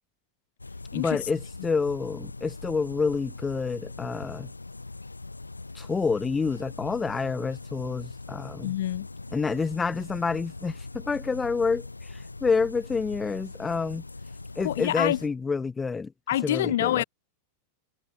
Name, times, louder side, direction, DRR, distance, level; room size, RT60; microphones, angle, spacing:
sound 1, 0.6-15.3, left 3 dB, 80° left, 7.2 m, -41 dB
voice 1, 0.9-4.5 5.7-8.7 9.3-14.0 14.6-16.1 16.4-17.0, left 4 dB, 15° left, 2.8 m, -28 dB
voice 2, 8.6-9.1 14.6-15.2 16.3-17.0, left 13 dB, 60° left, 2.8 m, -26 dB
figure-of-eight pair, 90°, 0 cm